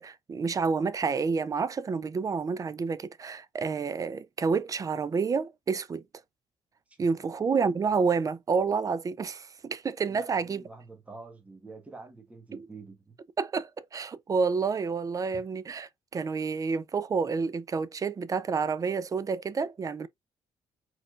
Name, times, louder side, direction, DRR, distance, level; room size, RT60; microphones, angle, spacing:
voice 1, 0.0-6.0 7.0-10.6 12.5-12.7 13.4-20.1, right 5 dB, 30° right, 0.5 m, -29 dB
voice 2, 10.1-13.2 15.3-15.4, right 3 dB, 10° right, 1.3 m, -47 dB
4.7 x 4.3 x 2.4 m
cardioid pair, 125°, 11 cm